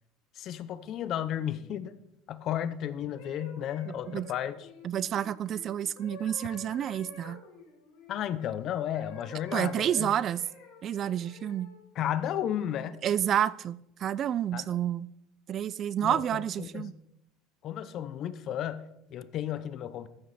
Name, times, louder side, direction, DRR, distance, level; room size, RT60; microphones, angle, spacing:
voice 1, 0.3-2.0 2.3-4.7 8.1-10.1 12.0-13.0 14.5-14.8 16.0-16.9 17.6-20.1, left 10 dB, 40° left, 0.6 m, -33 dB
sound 1, 3.1-8.5 8.9-11.8 12.4-12.7, left 3 dB, 75° left, 4.2 m, -50 dB
voice 2, 3.9-4.3 4.8-7.4 9.5-10.4 10.8-11.7 13.0-15.1 15.5-16.9, right 10 dB, 35° right, 0.3 m, -29 dB
13.5 x 7.6 x 4.2 m
cardioid pair, 150°, 0 cm